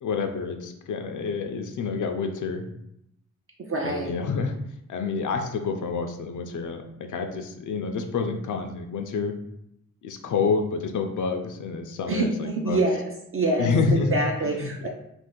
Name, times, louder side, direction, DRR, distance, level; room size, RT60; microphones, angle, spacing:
voice 1, 0.0-2.6 3.8-4.5 4.9-6.8 7.1-9.4 10.0-12.8 13.6-14.1 14.6-14.9, left 4 dB, 70° left, 5 dB, 0.5 m, -28 dB
voice 2, 3.6-4.1 12.1-14.9, right 2 dB, 45° right, 0 dB, 0.4 m, -26 dB
2.5 x 2.4 x 3.6 m, 0.80 s
wide cardioid pair, 90°, 31 cm